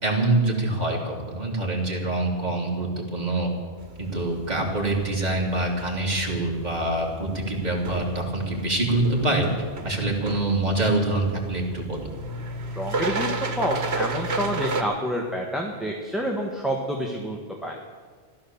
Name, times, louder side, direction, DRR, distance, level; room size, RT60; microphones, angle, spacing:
voice 1, 0.0-3.5 4.0-9.5 9.8-12.1, right 2 dB, 40° right, -1 dB, 3.1 m, -25 dB
sound 1, 3.8-14.8, right 2 dB, 85° right, 1.6 m, -33 dB
voice 2, 12.8-13.3 13.5-17.8, equal, ahead, 0 dB, 1.5 m, -28 dB
15.5 x 13.0 x 7.2 m, 1.6 s
omnidirectional pair, 1.1 m